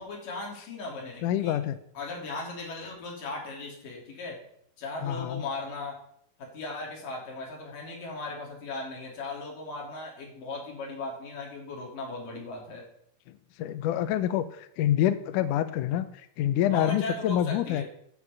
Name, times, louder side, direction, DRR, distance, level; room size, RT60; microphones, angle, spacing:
voice 1, 0.0-1.5 1.9-4.4 4.8-6.0 6.4-12.8 16.7-17.8, left 2 dB, 60° left, -1 dB, 4.7 m, -37 dB
voice 2, 1.2-1.8 5.0-5.4 13.6-16.1 16.4-17.8, left 11 dB, 90° left, 12 dB, 1.8 m, -26 dB
9.8 x 8.1 x 7.3 m, 0.70 s
omnidirectional pair, 4.6 m